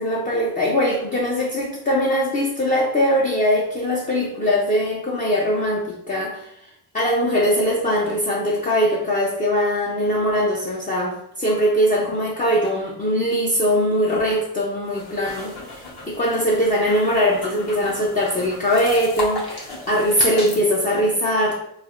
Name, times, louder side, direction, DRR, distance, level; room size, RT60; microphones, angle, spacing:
voice 1, 0.0-6.5 6.9-21.5, equal, 20° left, -3 dB, 0.5 m, -21 dB
sound 1, 14.8-20.6, left 2 dB, 50° left, 1.2 m, -35 dB
3.2 x 2.2 x 2.4 m, 0.79 s
supercardioid pair, 65°, 50 cm